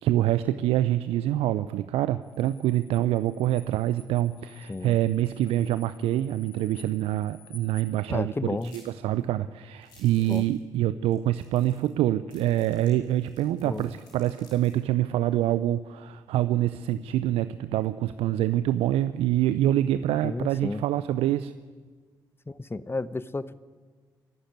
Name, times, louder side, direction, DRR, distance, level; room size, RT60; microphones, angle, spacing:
voice 1, 0.0-21.5, right 13 dB, 70° right, 14 dB, 0.6 m, -26 dB
sound 1, 2.2-8.1, left 5 dB, 40° left, 6.2 m, -54 dB
voice 2, 8.1-8.7 10.3-10.4 13.6-13.8 20.2-20.8 22.5-23.6, left 3 dB, 20° left, 16 dB, 1.1 m, -32 dB
sound 2, 8.6-8.9 9.2-9.3 9.8-10.6 11.1-11.2 11.4-12.0 12.3-14.8, left 3 dB, 90° left, 4.7 m, -56 dB
27.5 x 11.5 x 9.6 m, 1.5 s
hypercardioid pair, 40°, 10 cm